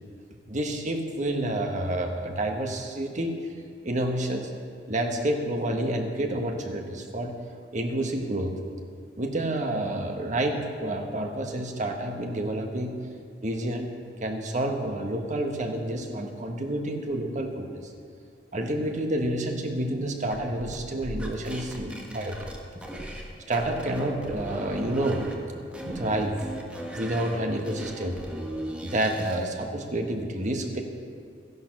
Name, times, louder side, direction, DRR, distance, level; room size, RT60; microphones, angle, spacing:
voice 1, 0.5-3.4 3.8-4.5 4.9-7.4 7.7-8.6 9.2-12.9 13.4-13.9 14.2-17.9 18.5-22.5 23.5-25.3 25.8-26.4 26.9-28.4 28.8-30.8, right 1 dB, 40° right, 3 dB, 1.4 m, -29 dB
sound 1, 20.3-23.3 23.5-25.3 25.7-29.4, equal, 5° right, 1.4 m, -37 dB
13.0 x 11.0 x 6.0 m, 2.3 s
head